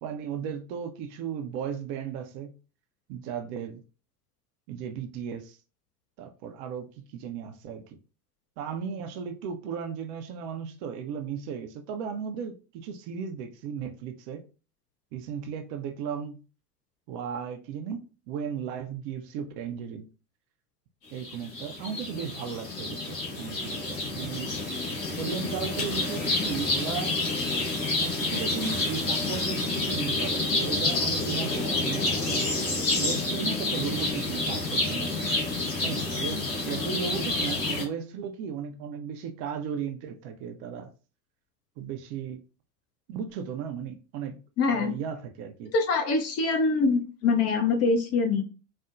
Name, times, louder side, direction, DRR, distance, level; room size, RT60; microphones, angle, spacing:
voice 1, 0.0-2.5 3.1-3.8 4.7-5.6 6.2-8.0 8.6-14.5 15.1-16.4 17.1-20.1 21.1-24.5 25.2-27.1 28.0-32.5 33.0-35.1 35.8-40.9 41.8-42.4 43.1-44.4 44.7-45.7, right 7 dB, 50° right, 0.6 m, -36 dB
sound 1, 21.2-37.8, left 2 dB, 90° left, 1.7 m, -29 dB
voice 2, 44.6-44.9 45.7-48.4, left 4 dB, 30° left, 0.6 m, -24 dB
4.3 x 2.1 x 2.4 m
hypercardioid pair, 85°, 48 cm